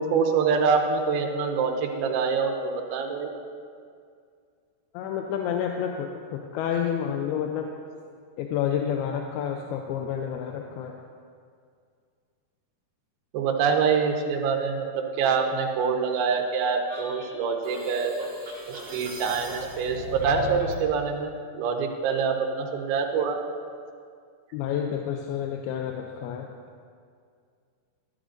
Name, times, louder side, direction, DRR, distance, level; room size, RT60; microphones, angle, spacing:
voice 1, 0.0-3.3 13.3-14.9 15.2-18.1 18.7-23.4, right 5 dB, 80° right, 2 dB, 2.7 m, -25 dB
voice 2, 4.9-7.7 8.4-11.0 24.5-26.5, left 8 dB, 85° left, 3 dB, 2.5 m, -29 dB
sound 1, 16.9-20.8, equal, 30° right, 1.8 m, -37 dB
13.0 x 11.0 x 2.5 m, 2.2 s
omnidirectional pair, 4.4 m